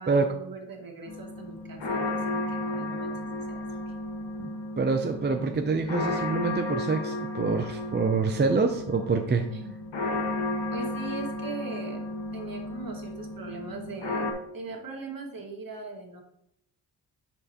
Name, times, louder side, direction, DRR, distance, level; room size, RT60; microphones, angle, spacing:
voice 1, 0.0-3.6 9.5-9.7 10.7-12.0 12.3-16.2, right 3 dB, 50° right, 1 dB, 2.0 m, -40 dB
sound 1, 1.1-14.3, left 2 dB, 70° left, 1.6 m, -33 dB
voice 2, 4.8-9.5, right 4 dB, 25° right, 5 dB, 0.5 m, -26 dB
9.7 x 4.5 x 2.9 m, 0.76 s
cardioid pair, 90°, 43 cm